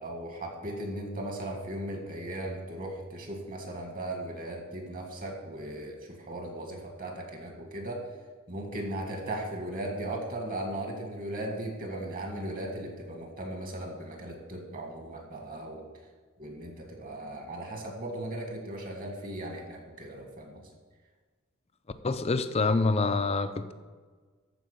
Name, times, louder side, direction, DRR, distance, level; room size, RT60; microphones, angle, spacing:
voice 1, 0.0-8.0 8.5-15.9 16.4-20.6, right 1 dB, 40° right, 2 dB, 1.8 m, -37 dB
voice 2, 22.0-23.7, left 3 dB, 25° left, 11 dB, 0.5 m, -26 dB
13.5 x 4.7 x 6.7 m, 1.5 s
head